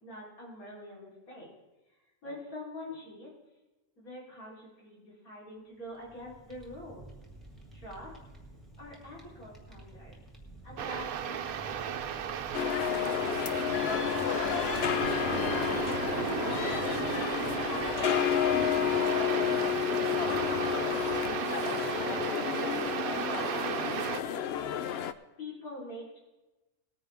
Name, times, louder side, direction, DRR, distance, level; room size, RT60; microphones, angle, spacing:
voice 1, 0.0-1.5 2.2-3.3 4.0-7.0 7.7-8.1 8.8-10.2 10.6-12.7 13.4-16.3 16.6-19.7 20.2-24.5 25.4-26.2, left 1 dB, 80° left, -6 dB, 4.3 m, -45 dB
Fire, 5.8-19.4, right 2 dB, ahead, 2.1 m, -51 dB
sound 1, 10.8-24.2, right 9 dB, 85° right, 1.2 m, -34 dB
sound 2, 12.5-25.1, left 10 dB, 65° left, 0.7 m, -31 dB
19.0 x 9.5 x 3.5 m, 1.1 s
omnidirectional pair, 1.5 m